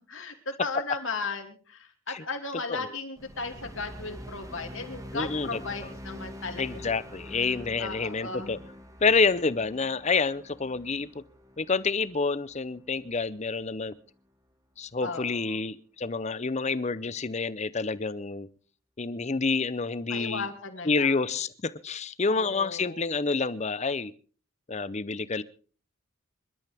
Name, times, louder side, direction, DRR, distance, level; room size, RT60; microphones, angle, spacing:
voice 1, 0.1-6.9 7.4-7.5 7.8-8.6 15.0-15.6 20.1-21.2 22.2-23.1, left 3 dB, 60° left, 5 dB, 2.7 m, -36 dB
sound 1, 3.2-13.6, equal, 15° right, 1.8 m, -45 dB
voice 2, 5.1-5.9 6.6-8.6 9.0-11.2 11.6-13.9 14.8-18.5 19.0-20.5 20.8-24.1 24.7-25.4, left 4 dB, 30° left, 17 dB, 0.6 m, -28 dB
26.5 x 12.5 x 3.5 m, 0.39 s
head